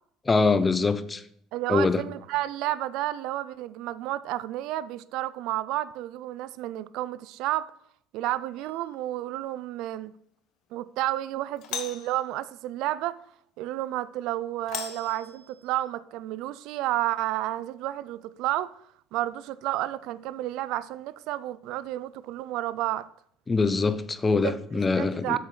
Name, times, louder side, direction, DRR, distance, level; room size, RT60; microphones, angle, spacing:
voice 1, 0.3-1.2 1.7-2.0 23.5-25.4, left 4 dB, 20° left, 0.6 m, -23 dB
voice 2, 1.5-7.7 8.1-10.1 10.7-13.2 13.6-18.7 19.1-23.1 24.4-25.4, right 14 dB, 75° right, 0.3 m, -31 dB
Doorbell, 8.6-9.0 11.6-12.2 14.7-15.8, left 9 dB, 65° left, 0.9 m, -38 dB
8.0 x 6.3 x 3.9 m
supercardioid pair, 100°, 0 cm